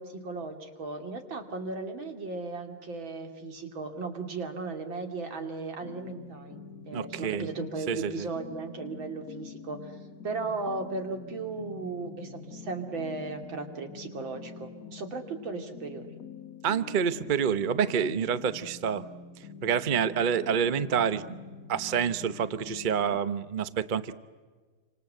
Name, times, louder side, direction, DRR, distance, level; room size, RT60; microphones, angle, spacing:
voice 1, 0.0-10.0 10.2-16.1, right 3 dB, 70° right, 5 dB, 3.3 m, -36 dB
sound 1, 5.8-23.2, left 6 dB, 50° left, 1.4 m, -46 dB
voice 2, 6.9-7.5 7.9-8.3 16.6-19.1 19.6-21.4 21.7-24.1, right 7 dB, 50° right, 13 dB, 0.6 m, -28 dB
28.5 x 26.0 x 7.9 m, 1.4 s
omnidirectional pair, 2.2 m